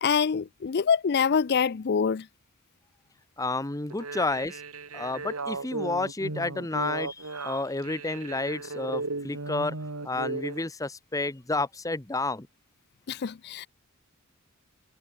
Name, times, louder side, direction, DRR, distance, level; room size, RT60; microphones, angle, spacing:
voice 1, 0.0-2.3 13.1-13.7, left 6 dB, 50° left, 0.4 m, -25 dB
voice 2, 3.4-4.6 4.9-9.8 10.0-12.5, left 2 dB, 15° left, 0.9 m, -30 dB
sound 1, 3.9-10.6, right 3 dB, 85° right, 2.5 m, -36 dB
head